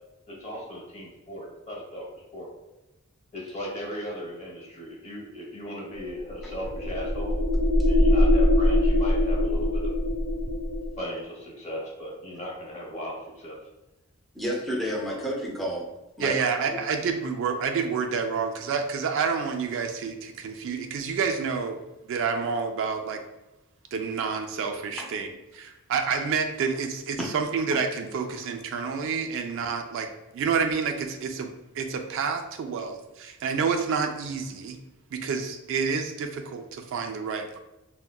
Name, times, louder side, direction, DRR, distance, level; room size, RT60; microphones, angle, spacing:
voice 1, 0.3-2.5 3.3-7.4 7.8-9.9 11.0-13.6 15.0-15.2, equal, 30° left, -4 dB, 0.9 m, -37 dB
sound 1, 6.0-11.0, left 1 dB, 30° right, 0.8 m, -22 dB
voice 2, 14.3-15.9 16.2-16.8 25.0-25.1 27.2-27.3, equal, ahead, -4 dB, 0.6 m, -31 dB
voice 3, 16.2-21.8 22.1-23.2 23.9-25.3 25.5-30.1 30.3-31.5 31.7-34.8 35.1-37.6, right 5 dB, 60° right, 5 dB, 0.3 m, -28 dB
3.6 x 2.1 x 2.2 m, 0.98 s
head